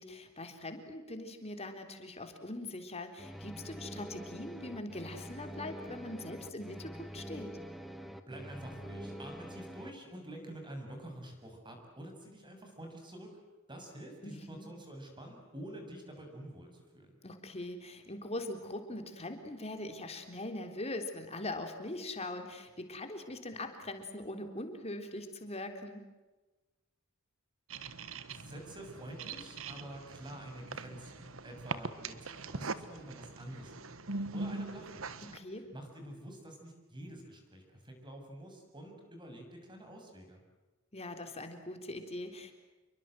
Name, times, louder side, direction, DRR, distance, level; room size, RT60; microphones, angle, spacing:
voice 1, 0.0-7.5 14.2-14.7 17.2-26.1 35.2-35.7 40.9-42.5, left 1 dB, 30° left, 6 dB, 3.7 m, -42 dB
sound 1, 3.2-9.9, equal, ahead, 1.8 m, -45 dB
voice 2, 8.3-13.3 13.7-17.2 28.3-32.2 32.5-34.0 34.3-35.1 35.5-40.4, right 1 dB, 20° right, 3 dB, 7.0 m, -48 dB
sound 2, 27.7-35.4, right 3 dB, 70° right, 1.5 m, -42 dB
28.5 x 23.5 x 7.8 m, 1.2 s
head